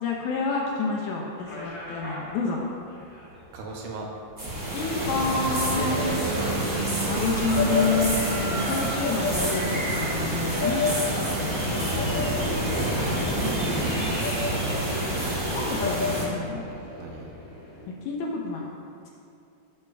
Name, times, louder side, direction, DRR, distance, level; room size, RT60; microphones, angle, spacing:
voice 1, 0.0-2.6 4.7-6.1 7.1-10.8 11.7-12.2 13.2-14.2 15.5-16.7 18.0-18.7, left 4 dB, 75° left, -1 dB, 1.8 m, -29 dB
sound 1, 1.4-17.9, equal, 30° left, 1.2 m, -36 dB
voice 2, 3.5-4.1 5.5-6.8 11.2-11.9 12.6-13.9 17.0-17.4, right 2 dB, 75° right, 0 dB, 2.1 m, -37 dB
sound 2, 4.4-16.2, equal, 45° right, 0.6 m, -27 dB
12.0 x 6.4 x 2.3 m, 2.6 s
omnidirectional pair, 3.8 m